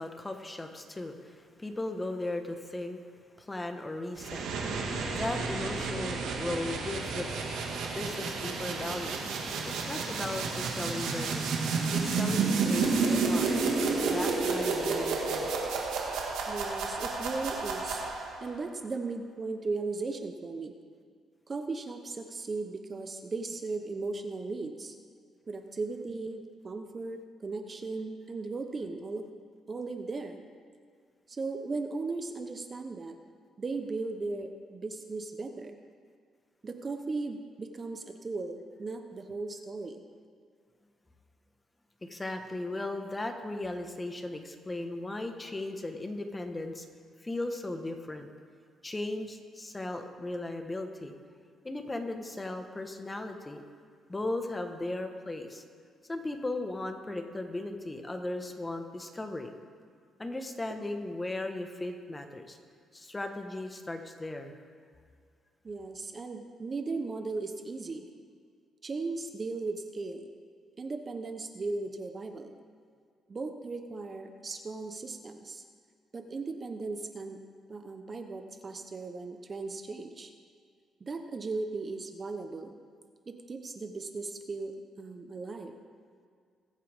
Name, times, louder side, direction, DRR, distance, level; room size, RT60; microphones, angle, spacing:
voice 1, 0.0-3.0 3.4-4.5 5.1-7.3 7.9-9.2 9.7-11.5 11.9-13.5 14.1-15.5 42.0-46.8 47.2-48.3 48.8-51.1 51.6-53.6 54.1-55.6 56.1-59.5 60.2-62.6 62.9-64.6, left 2 dB, 20° left, 5 dB, 1.4 m, -37 dB
sound 1, 4.2-18.5, right 4 dB, 90° right, 1.9 m, -31 dB
voice 2, 16.5-18.0 18.4-20.7 21.5-25.0 25.5-29.3 29.7-30.4 31.3-33.2 33.6-35.8 36.6-40.0 65.6-68.1 68.8-70.3 70.8-72.6 73.3-75.6 76.1-77.4 77.7-80.3 81.0-82.8 83.3-85.8, right 3 dB, 35° right, 6 dB, 1.0 m, -37 dB
22.0 x 8.5 x 3.6 m, 2.1 s
cardioid pair, 90°, 0 cm